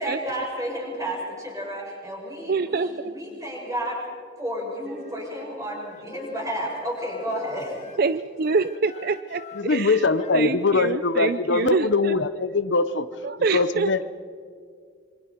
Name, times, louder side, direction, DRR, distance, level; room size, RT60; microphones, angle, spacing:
voice 1, 0.0-4.0 4.4-8.0, equal, 20° right, -3 dB, 7.3 m, -31 dB
voice 2, 2.5-3.1 8.0-10.0 10.3-12.2 13.2-13.9, right 4 dB, 55° right, 12 dB, 0.5 m, -26 dB
Wind instrument woodwind instrument, 4.8-8.0 8.4-11.8, left 2 dB, 40° left, 1.1 m, -44 dB
voice 3, 9.5-13.1 13.5-14.0, left 3 dB, 75° left, 13 dB, 0.8 m, -22 dB
26.5 x 24.5 x 4.6 m, 2.1 s
head